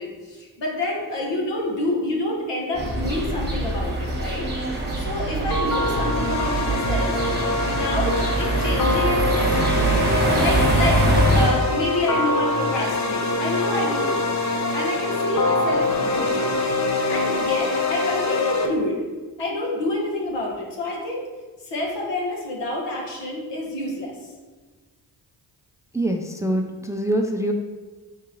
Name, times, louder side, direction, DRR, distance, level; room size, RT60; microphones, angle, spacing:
voice 1, 0.0-4.4 5.0-7.2 7.6-9.5 10.3-11.0 11.3-14.2 14.7-16.5 17.1-19.0 19.4-21.2 21.6-24.1, left 1 dB, 70° left, -1 dB, 1.2 m, -27 dB
sound 1, 2.8-11.5, right 2 dB, 25° right, 1.3 m, -23 dB
sound 2, 5.5-18.7, left 2 dB, 40° left, 0.7 m, -24 dB
voice 2, 25.9-27.5, right 1 dB, 5° right, 3 dB, 0.4 m, -24 dB
4.5 x 3.7 x 3.0 m, 1.3 s
supercardioid pair, 40°, 44 cm